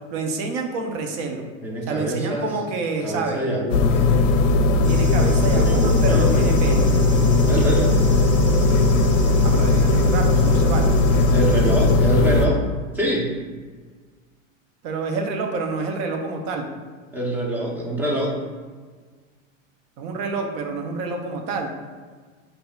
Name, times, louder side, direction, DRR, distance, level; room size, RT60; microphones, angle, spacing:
voice 1, 0.1-1.4 1.9-3.4 4.9-7.0 9.4-11.0 14.8-16.7 20.0-21.7, right 4 dB, 50° right, 3 dB, 0.7 m, -28 dB
voice 2, 1.6-2.5 3.0-4.0 5.4-6.4 7.5-8.0 11.3-12.6 12.9-13.3 17.1-18.4, equal, 5° right, -3 dB, 0.6 m, -25 dB
sound 1, 3.7-12.5, left 2 dB, 70° left, 0.5 m, -17 dB
sound 2, 4.8-12.0, right 2 dB, 30° right, 1.4 m, -40 dB
6.7 x 2.7 x 2.3 m, 1.5 s
supercardioid pair, 130°, 39 cm